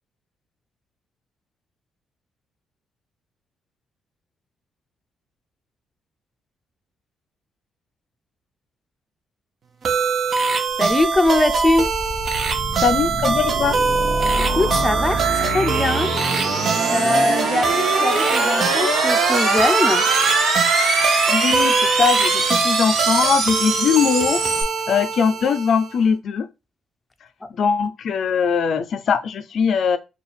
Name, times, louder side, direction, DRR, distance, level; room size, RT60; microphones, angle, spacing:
sound 1, 9.8-26.0, right 5 dB, 50° right, 0.7 m, -23 dB
voice 1, 10.8-11.9 14.5-16.1 16.9-20.1, left 2 dB, 15° left, 0.5 m, -21 dB
sound 2, 10.9-24.6, right 3 dB, 75° right, 1.2 m, -23 dB
voice 2, 12.8-13.8 21.3-24.4 24.9-26.5 27.5-30.0, left 6 dB, 60° left, 0.4 m, -21 dB
sound 3, 17.8-22.0, right 7 dB, 90° right, 0.5 m, -34 dB
4.4 x 2.3 x 3.3 m
cardioid pair, 90°, 0 cm